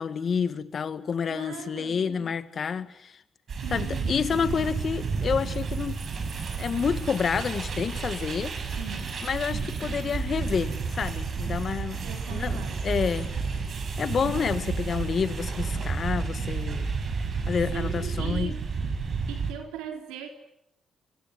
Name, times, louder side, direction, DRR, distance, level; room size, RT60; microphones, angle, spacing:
voice 1, 0.0-3.1 3.7-6.0 6.6-8.6 9.2-12.0 12.3-13.3 14.0-16.9 17.5-18.5, left 6 dB, 55° left, 1.9 m, -29 dB
voice 2, 1.2-2.1 3.5-4.3 8.8-9.2 9.5-10.4 12.0-13.1 14.0-14.6 17.3-17.5 17.7-18.6 19.3-20.3, right 8 dB, 85° right, 3.5 m, -41 dB
sound 1, 3.5-19.5, right 5 dB, 55° right, 6.1 m, -31 dB
25.5 x 23.5 x 9.8 m
supercardioid pair, 50°, 0 cm